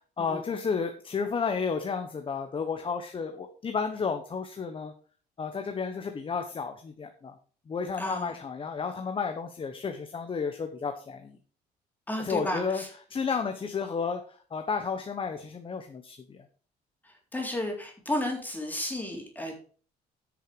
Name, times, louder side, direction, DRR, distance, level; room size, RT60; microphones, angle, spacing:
voice 1, 0.2-4.9 5.4-7.3 7.7-11.4 12.2-12.8 13.1-16.4, left 5 dB, 30° left, 6 dB, 1.3 m, -32 dB
voice 2, 8.0-8.4 12.1-12.9 17.0-19.5, left 1 dB, 10° left, 2 dB, 3.7 m, -33 dB
10.5 x 6.5 x 5.1 m, 0.41 s
cardioid pair, 110°, 17 cm